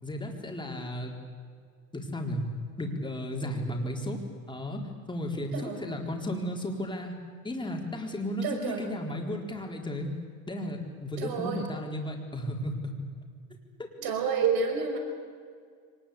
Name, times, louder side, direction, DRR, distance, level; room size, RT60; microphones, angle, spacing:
voice 1, 0.0-1.1 1.9-2.4 2.8-7.1 7.4-10.1 10.5-13.0 13.8-13.9, left 1 dB, 10° left, 1 dB, 4.2 m, -34 dB
voice 2, 8.4-8.8 11.2-11.6 14.0-15.0, right 6 dB, 55° right, 4 dB, 5.8 m, -29 dB
24.0 x 20.0 x 8.5 m, 2.1 s
supercardioid pair, 105°, 43 cm